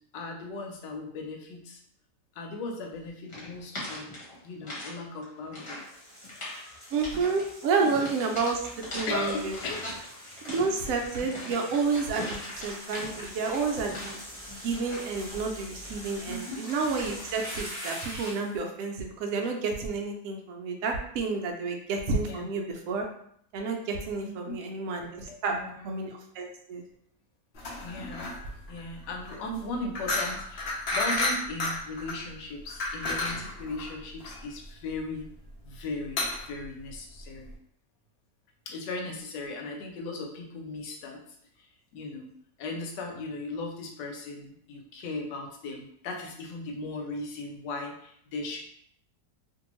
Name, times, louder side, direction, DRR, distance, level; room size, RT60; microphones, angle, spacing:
voice 1, 0.1-1.8 2.3-4.2 4.4-5.8 6.2-6.9 7.8-8.1 9.1-10.4 16.3-16.7 22.2-22.6 24.2-24.6 25.3-25.9 27.8-28.3 28.7-35.3 35.6-37.5 38.7-41.2 41.6-42.3 42.6-48.6, left 3 dB, 85° left, 2 dB, 1.3 m, -38 dB
sound 1, 3.3-4.9 5.2-5.9 6.2-6.6 7.0-7.5 7.9-10.1 10.4-14.4 14.7-15.2, left 1 dB, 40° left, 1.1 m, -40 dB
sound 2, 5.6-18.6, equal, 15° right, 0.6 m, -43 dB
voice 2, 6.9-9.6 10.4-14.2 14.5-23.0 23.5-26.8, right 4 dB, 70° right, 2 dB, 0.8 m, -30 dB
sound 3, 27.5-37.5, left 2 dB, 60° left, 0.6 m, -33 dB
2.7 x 2.6 x 2.9 m, 0.67 s
omnidirectional pair, 1.9 m